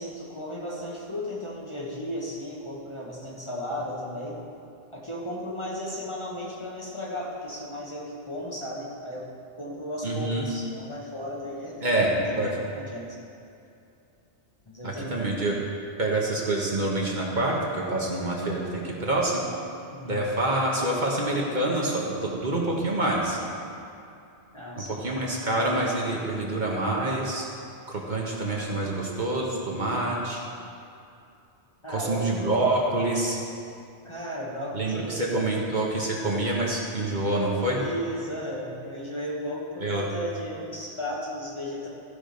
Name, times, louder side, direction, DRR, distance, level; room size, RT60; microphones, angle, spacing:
voice 1, 0.0-4.4 4.9-13.2 14.7-15.2 19.9-20.3 24.5-25.0 31.8-32.3 34.0-35.3 37.7-41.9, left 1 dB, 30° left, -4 dB, 1.2 m, -35 dB
voice 2, 10.0-10.4 11.8-12.6 14.8-15.5 16.0-19.4 20.1-23.4 24.7-27.5 27.9-30.4 31.9-33.4 34.7-37.8 39.8-40.0, right 2 dB, 45° right, -3 dB, 1.3 m, -26 dB
14.5 x 4.9 x 5.2 m, 2.6 s
omnidirectional pair, 1.1 m